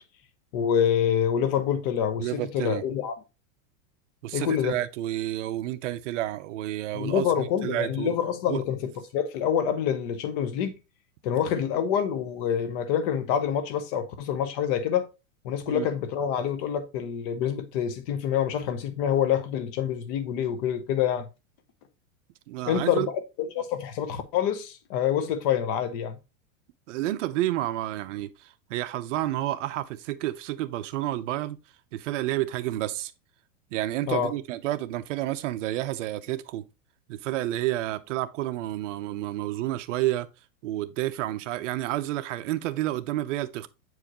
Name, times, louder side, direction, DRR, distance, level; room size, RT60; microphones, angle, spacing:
voice 1, 0.5-3.1 4.3-4.7 6.9-10.7 11.2-15.1 15.4-21.3 22.7-26.2 34.1-34.3, left 9 dB, 40° left, 0.9 m, -26 dB
voice 2, 2.2-2.8 4.2-8.2 8.5-8.6 15.7-15.9 22.5-23.1 26.9-31.6 31.9-33.1 33.7-36.6 37.1-40.3 40.6-43.7, right 14 dB, 60° right, 0.7 m, -30 dB
7.5 x 4.8 x 3.0 m
supercardioid pair, 160°, 42 cm